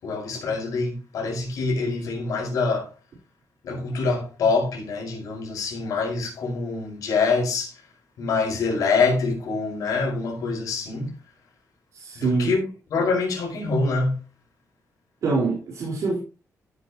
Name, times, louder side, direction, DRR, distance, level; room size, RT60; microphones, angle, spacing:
voice 1, 0.0-2.9 3.6-7.8 8.2-11.1 12.2-14.2, left 4 dB, 75° left, 5.6 m, -25 dB
voice 2, 11.9-12.6 15.2-16.2, right 3 dB, 60° right, 4.2 m, -25 dB
14.0 x 9.1 x 3.1 m
wide cardioid pair, 170°, 6 cm